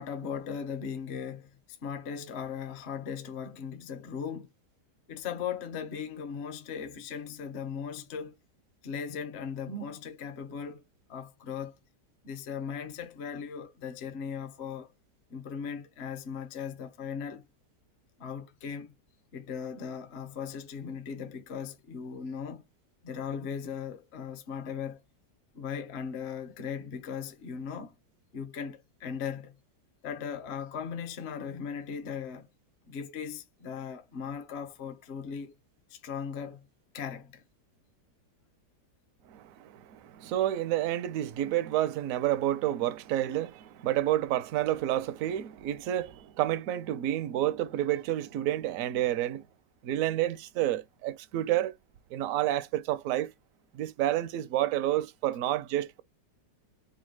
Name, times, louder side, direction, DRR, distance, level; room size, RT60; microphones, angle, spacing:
voice 1, 0.0-1.5 1.8-4.5 5.1-8.4 8.8-10.8 11.1-11.8 12.2-14.9 15.3-17.5 18.2-18.9 19.3-22.6 23.0-25.0 25.5-27.9 28.3-29.5 30.0-32.5 32.9-35.5 35.9-36.6 36.9-37.4, left 7 dB, 50° left, 0.9 m, -38 dB
voice 2, 39.3-49.4 49.8-51.8 52.1-53.3 53.7-56.0, right 13 dB, 70° right, 0.9 m, -29 dB
4.0 x 2.3 x 4.6 m
omnidirectional pair, 1.8 m